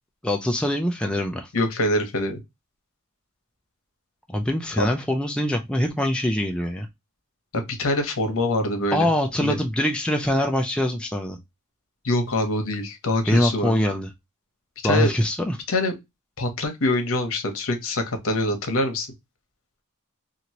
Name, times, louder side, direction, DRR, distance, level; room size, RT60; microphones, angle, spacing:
voice 1, 0.2-1.5 4.3-6.9 8.9-11.4 13.3-14.1 14.8-15.6, left 1 dB, 5° left, 0.4 m, -23 dB
voice 2, 1.5-2.4 4.8-4.9 7.5-9.1 9.4-9.6 12.0-13.7 14.8-15.1 15.7-15.9 16.4-19.1, left 1 dB, 65° left, 1.0 m, -24 dB
3.0 x 2.5 x 2.8 m
head